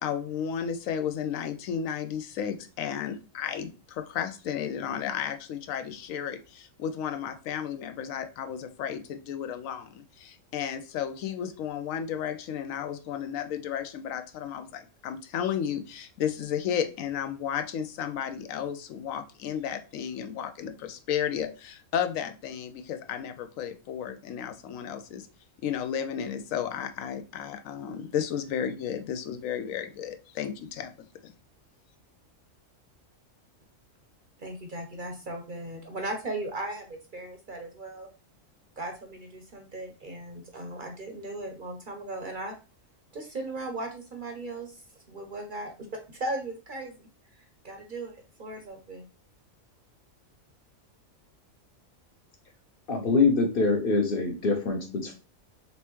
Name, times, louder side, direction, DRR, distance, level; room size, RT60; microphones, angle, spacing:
voice 1, 0.0-25.3 25.6-30.9 31.2-31.3, left 8 dB, 80° left, 8 dB, 1.0 m, -33 dB
voice 2, 34.4-38.1 38.8-42.5 43.1-44.8 45.1-45.7 46.2-47.1 47.6-49.0, right 2 dB, 50° right, 4 dB, 0.7 m, -37 dB
voice 3, 52.9-55.1, left 4 dB, 50° left, 4 dB, 0.9 m, -24 dB
4.2 x 3.3 x 3.0 m, 0.33 s
omnidirectional pair, 1.4 m